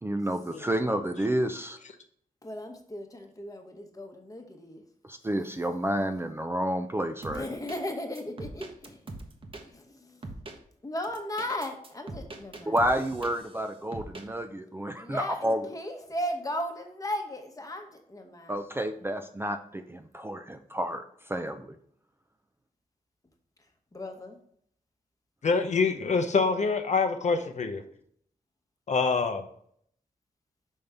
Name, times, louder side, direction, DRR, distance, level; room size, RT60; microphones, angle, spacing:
voice 1, 0.0-1.8 5.1-7.5 12.7-15.7 18.5-21.6, right 1 dB, 15° right, 7 dB, 0.4 m, -30 dB
voice 2, 2.4-4.8 7.3-9.0 9.7-10.1 10.8-12.7 15.0-18.6 23.9-24.4, left 1 dB, 25° left, 4 dB, 1.0 m, -36 dB
sound 1, 7.2-7.8 8.1-9.6 10.2-10.6 11.0-13.6 13.9-14.2, right 2 dB, 40° right, 0.9 m, -41 dB
voice 3, 25.4-27.8 28.9-29.4, left 4 dB, 55° left, 6 dB, 0.6 m, -25 dB
5.4 x 5.2 x 3.4 m, 0.65 s
wide cardioid pair, 115°, 14 cm